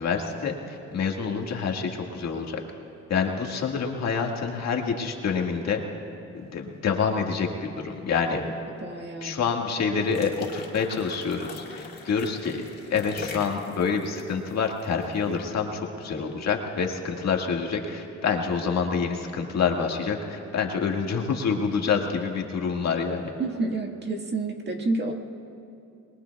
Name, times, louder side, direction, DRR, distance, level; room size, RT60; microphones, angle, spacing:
voice 1, 0.0-2.6 3.1-5.8 6.3-8.5 9.2-23.3, left 5 dB, 60° left, 1 dB, 1.9 m, -27 dB
voice 2, 8.8-9.4 23.4-25.1, right 3 dB, 35° right, 2 dB, 1.7 m, -29 dB
sound 1, 10.0-15.2, left 3 dB, 35° left, 3.5 m, -42 dB
28.5 x 21.5 x 2.3 m, 2.5 s
cardioid pair, 90°, 30 cm